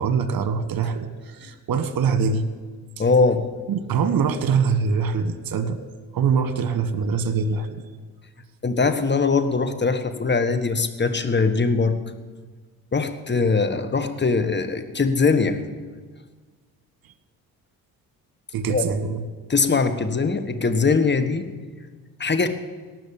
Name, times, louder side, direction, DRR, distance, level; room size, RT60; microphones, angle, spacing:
voice 1, 0.0-2.4 3.7-5.8 6.1-7.8 18.5-19.2, right 5 dB, 60° right, 11 dB, 1.4 m, -23 dB
voice 2, 3.0-3.4 8.6-12.0 12.9-15.6 18.7-18.8 19.5-21.4 22.2-22.5, left 4 dB, 25° left, 9 dB, 1.4 m, -21 dB
18.5 x 6.3 x 8.8 m, 1.4 s
hypercardioid pair, 55°, 41 cm